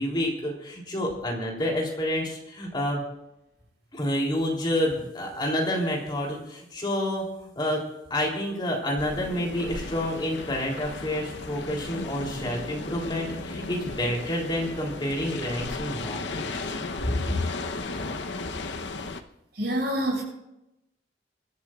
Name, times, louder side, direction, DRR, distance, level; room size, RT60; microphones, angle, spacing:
voice 1, 0.0-3.0 3.9-7.8 8.1-16.7 17.3-17.4, left 1 dB, 25° left, -1 dB, 3.4 m, -29 dB
sound 1, 9.0-19.2, left 3 dB, 90° left, 1.0 m, -35 dB
voice 2, 19.5-20.2, right 1 dB, 65° right, -1 dB, 6.6 m, -26 dB
24.5 x 13.0 x 2.5 m, 0.86 s
head